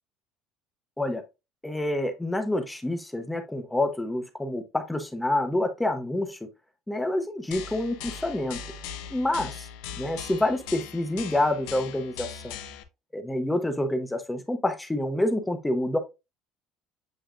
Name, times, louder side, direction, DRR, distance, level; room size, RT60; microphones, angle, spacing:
voice 1, 1.6-6.4 6.9-8.6 9.1-9.7 10.0-12.6 13.1-16.0, left 1 dB, 5° left, 0.6 m, -27 dB
sound 1, 7.5-12.8, left 8 dB, 85° left, 0.6 m, -40 dB
8.0 x 2.7 x 2.4 m
cardioid pair, 145°, 0 cm